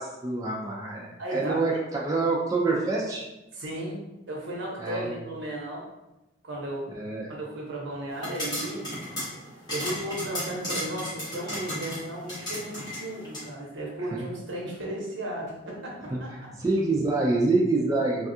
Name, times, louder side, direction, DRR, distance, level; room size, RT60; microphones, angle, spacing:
voice 1, 0.0-3.2 4.8-5.1 6.9-7.3 14.1-14.3 16.1-16.2 16.6-18.3, right 3 dB, 20° right, -3 dB, 0.3 m, -26 dB
voice 2, 1.2-1.8 3.5-4.0 4.3-5.9 6.4-6.9 7.3-8.9 9.7-16.3, right 1 dB, 75° right, -3 dB, 0.9 m, -35 dB
sound 1, 8.1-13.5, left 1 dB, 25° left, 1.3 m, -35 dB
3.3 x 2.3 x 2.6 m, 0.97 s
head